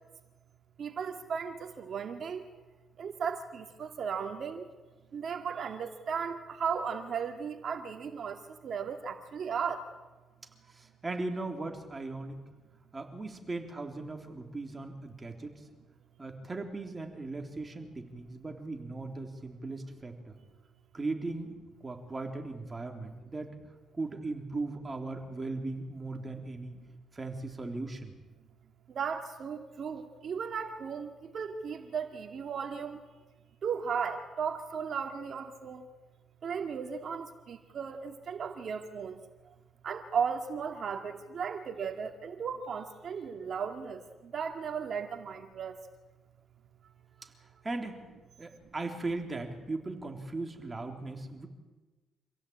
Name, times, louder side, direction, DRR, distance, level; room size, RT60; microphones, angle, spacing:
voice 1, 0.8-2.5 3.0-4.6 5.1-9.9 28.9-33.0 33.6-35.9 36.4-39.2 39.8-45.8, right 6 dB, 55° right, 5 dB, 2.3 m, -36 dB
voice 2, 10.7-12.4 12.9-15.6 16.2-20.4 20.9-21.5 21.8-23.5 24.0-26.8 27.1-28.1 47.2-47.3 47.6-48.0 48.4-51.5, right 3 dB, 25° right, 3 dB, 3.7 m, -38 dB
26.5 x 16.0 x 8.9 m, 1.2 s
cardioid pair, 90°, 0 cm